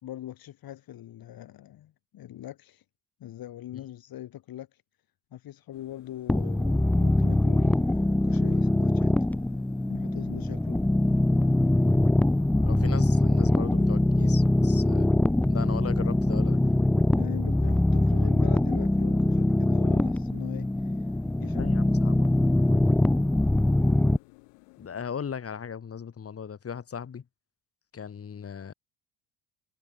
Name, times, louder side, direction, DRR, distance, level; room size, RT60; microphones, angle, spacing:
voice 1, 0.0-2.8 3.2-4.7 5.3-9.1 9.9-10.8 13.7-13.9 17.2-20.7 21.4-21.8, left 12 dB, 55° left, 4.8 m, -41 dB
sound 1, 5.7-25.1, left 34 dB, 85° left, 6.8 m, -55 dB
sound 2, 6.3-24.2, left 1 dB, 5° left, 0.5 m, -23 dB
voice 2, 12.6-15.1 15.5-16.6 21.6-22.3 24.8-27.2 27.9-28.7, left 7 dB, 30° left, 6.2 m, -37 dB
cardioid pair, 110°, 43 cm